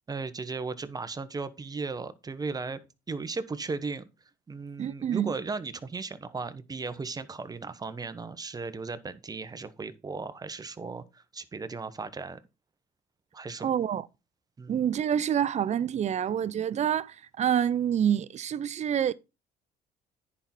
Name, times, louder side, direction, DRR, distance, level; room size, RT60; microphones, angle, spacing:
voice 1, 0.1-2.8 3.1-4.1 4.5-12.4 13.3-13.7 14.6-14.9, right 4 dB, 20° right, 1.1 m, -36 dB
voice 2, 4.8-5.3 13.6-14.1 14.7-19.1, right 9 dB, 45° right, 0.6 m, -27 dB
10.0 x 5.5 x 4.4 m
cardioid pair, 110°, 17 cm